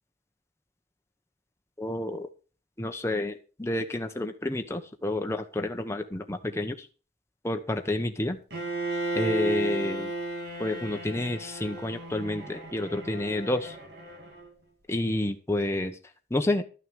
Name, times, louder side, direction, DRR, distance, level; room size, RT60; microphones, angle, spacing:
voice 1, 1.8-2.3 2.8-6.8 7.4-8.4 9.1-10.1 10.6-13.7 14.9-15.9 16.3-16.6, left 1 dB, 15° left, 5 dB, 1.0 m, -29 dB
Bowed string instrument, 8.5-14.5, right 2 dB, 65° right, 3.0 m, -34 dB
12.5 x 6.4 x 6.4 m, 0.36 s
head